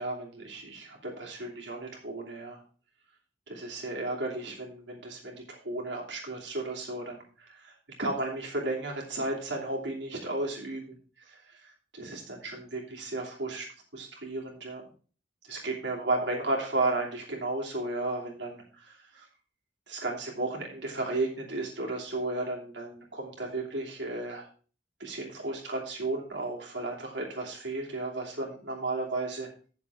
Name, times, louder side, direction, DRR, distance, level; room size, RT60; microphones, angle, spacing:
voice 1, 0.0-2.6 3.5-7.7 8.0-10.8 11.3-13.6 13.9-14.8 15.5-19.3 19.9-24.5 25.0-29.5, right 2 dB, 85° right, -1 dB, 2.9 m, -34 dB
8.6 x 7.1 x 4.8 m, 0.39 s
head